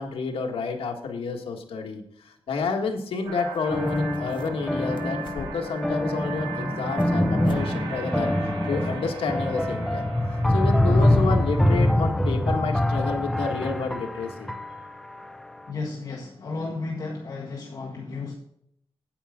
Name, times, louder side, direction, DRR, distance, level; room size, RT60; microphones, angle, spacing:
voice 1, 0.0-10.1 10.5-14.5, left 4 dB, 80° left, 3 dB, 1.7 m, -30 dB
sound 1, 3.2-11.8, right 4 dB, 75° right, 3.9 m, -39 dB
sound 2, 3.5-3.6 3.8-4.7 5.0-5.8 6.3-7.2 7.4-7.7 8.0-8.1 8.6-8.7, left 5 dB, 55° left, 0.9 m, -45 dB
sound 3, 3.7-15.2, left 1 dB, 5° left, 0.5 m, -24 dB
voice 2, 15.7-18.3, left 3 dB, 40° left, -2 dB, 1.5 m, -33 dB
9.8 x 8.9 x 3.8 m, 0.69 s
wide cardioid pair, 170°, 9 cm